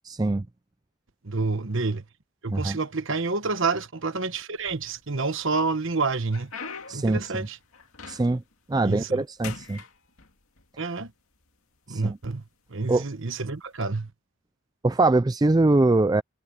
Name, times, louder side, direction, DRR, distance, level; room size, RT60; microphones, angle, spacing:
voice 1, 1.2-2.0 2.4-6.5 6.9-7.6 8.8-9.2 10.8-11.1 11.9-12.4 12.7-14.1, right 3 dB, 60° right, 1.2 m, -28 dB
sound 1, 4.6-5.3 5.8-8.5 8.9-9.2 9.4-10.7 11.5-11.6 12.3-12.5 13.7-13.9, left 5 dB, 70° left, 2.3 m, -42 dB
voice 2, 6.9-7.2 8.1-8.4 8.7-9.8 11.9-12.2 12.9-13.0 14.8-16.2, right 2 dB, 15° right, 0.4 m, -22 dB
head